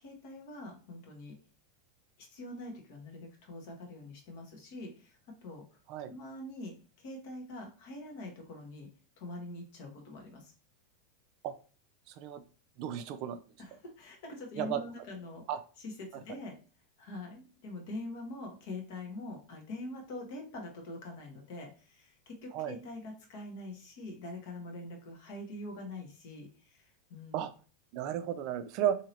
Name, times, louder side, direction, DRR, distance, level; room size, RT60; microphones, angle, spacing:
voice 1, 0.0-1.3 2.2-5.1 5.4-5.6 6.1-6.7 7.0-8.9 9.2-10.5 13.6-15.4 15.8-16.5 17.0-27.4, left 2 dB, 60° left, 2 dB, 1.0 m, -44 dB
voice 2, 12.1-12.4 12.8-13.4 14.6-14.8 15.5-15.6 22.5-22.8 27.3-27.5 27.9-29.0, right 10 dB, 50° right, 10 dB, 0.3 m, -33 dB
2.8 x 2.7 x 2.8 m, 0.37 s
hypercardioid pair, 90°, 0 cm